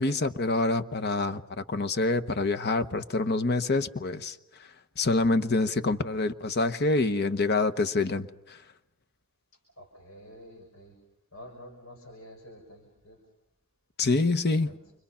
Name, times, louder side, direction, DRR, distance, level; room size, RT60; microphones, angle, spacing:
voice 1, 0.0-4.4 5.0-8.6 14.0-14.7, left 3 dB, 50° left, 1.0 m, -26 dB
voice 2, 9.8-11.0 11.3-13.2 14.3-14.8, equal, 85° left, 5.5 m, -49 dB
29.5 x 25.0 x 5.7 m
head